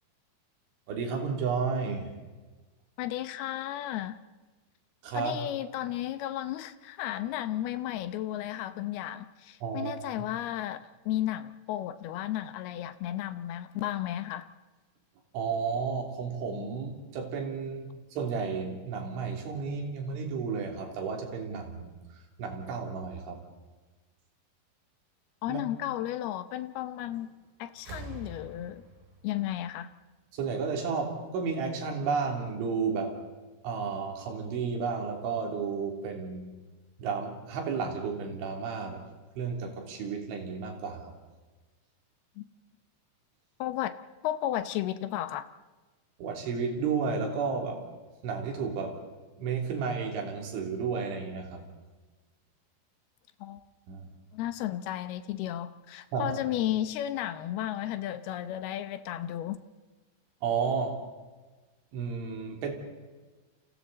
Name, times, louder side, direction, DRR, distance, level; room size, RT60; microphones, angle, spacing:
voice 1, 0.9-2.1 5.0-5.4 9.6-10.0 15.3-21.9 22.4-23.4 25.5-25.6 30.3-33.2 33.6-36.5 37.0-39.0 39.4-41.1 46.2-47.9 48.2-49.0 49.4-51.6 53.9-54.1 56.1-56.3 60.4-61.0 61.9-62.7, right 5 dB, 85° right, 2 dB, 5.7 m, -32 dB
voice 2, 3.0-4.2 5.1-14.5 25.4-27.3 27.6-28.8 29.2-29.9 42.4-42.5 43.6-43.9 44.2-45.5 53.4-53.6 54.3-59.6, left 12 dB, 75° left, 11 dB, 2.5 m, -33 dB
sound 1, 27.1-27.4 27.7-30.5 31.6-31.7, right 3 dB, 60° right, 5.0 m, -47 dB
29.5 x 28.5 x 4.2 m, 1.3 s
omnidirectional pair, 5.3 m